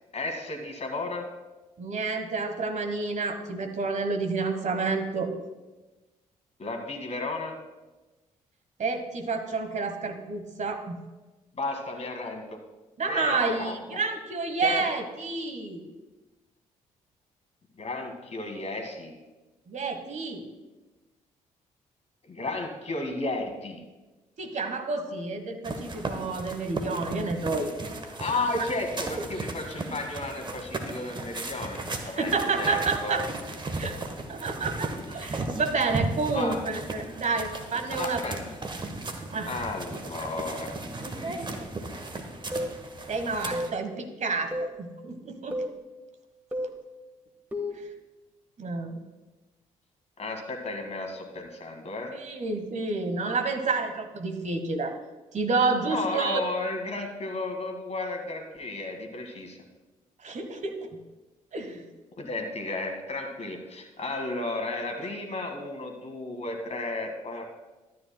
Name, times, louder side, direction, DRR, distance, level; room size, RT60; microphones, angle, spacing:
voice 1, 0.1-1.3 6.6-7.6 11.5-12.6 13.1-14.0 14.6-14.9 17.8-19.2 22.3-23.8 28.2-33.2 36.3-36.7 37.9-38.6 39.5-40.8 41.4-42.0 50.2-52.1 55.8-59.6 62.2-67.7, left 2 dB, 40° left, 3 dB, 1.8 m, -33 dB
voice 2, 1.8-5.3 8.8-11.0 13.0-15.8 19.7-20.5 24.4-27.8 32.2-33.2 33.8-34.0 34.3-38.2 39.3-39.5 41.2-41.6 43.1-45.6 48.6-49.0 52.1-54.9 55.3-56.4 60.2-61.0 61.5-61.8, right 4 dB, 45° right, 7 dB, 1.2 m, -29 dB
sound 1, 25.6-43.7, right 2 dB, 25° right, 1.1 m, -36 dB
sound 2, 42.5-42.8 43.5-43.8 44.5-44.8 45.5-45.8 46.5-46.8 47.5-47.8, left 1 dB, 10° right, 1.5 m, -31 dB
13.0 x 9.4 x 2.2 m, 1.1 s
figure-of-eight pair, 40°, 17 cm